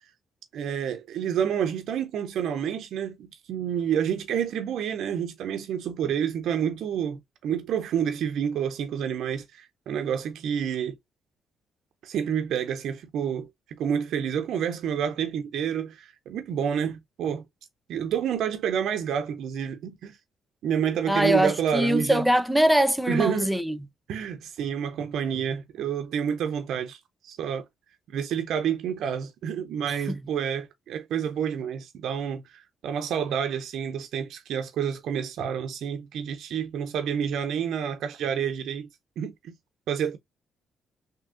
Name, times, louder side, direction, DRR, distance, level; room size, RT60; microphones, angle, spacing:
voice 1, 0.5-11.0 12.0-13.5 13.8-17.4 17.9-20.2 20.6-22.2 23.1-23.5 24.1-27.6 28.1-38.9 39.2-39.5 39.9-40.2, right 8 dB, 75° right, 0.4 m, -29 dB
voice 2, 21.1-23.8 29.9-30.2, right 1 dB, ahead, 0.5 m, -23 dB
3.5 x 2.7 x 2.4 m
cardioid pair, 90°, 0 cm